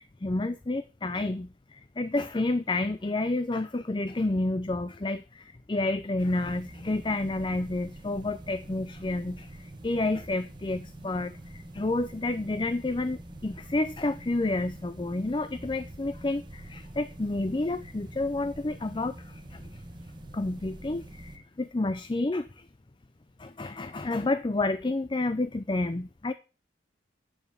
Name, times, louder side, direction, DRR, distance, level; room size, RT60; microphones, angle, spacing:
voice 1, 0.0-19.8 20.3-22.7 23.4-26.3, left 2 dB, 25° left, 12 dB, 0.5 m, -30 dB
sound 1, 6.2-21.4, right 1 dB, 25° right, 1.1 m, -46 dB
9.0 x 6.8 x 6.9 m, 0.32 s
head